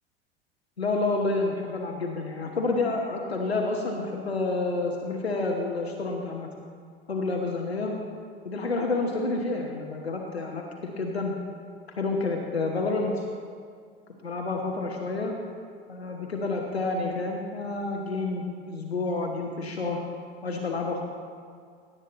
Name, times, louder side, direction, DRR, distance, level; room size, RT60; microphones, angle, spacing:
voice 1, 0.8-6.5 7.1-7.9 8.4-11.3 12.0-13.3 14.2-15.3 15.9-20.0 20.4-21.0, left 3 dB, 90° left, 1 dB, 1.1 m, -29 dB
17.0 x 8.8 x 3.9 m, 2.1 s
figure-of-eight pair, 75°, 30 cm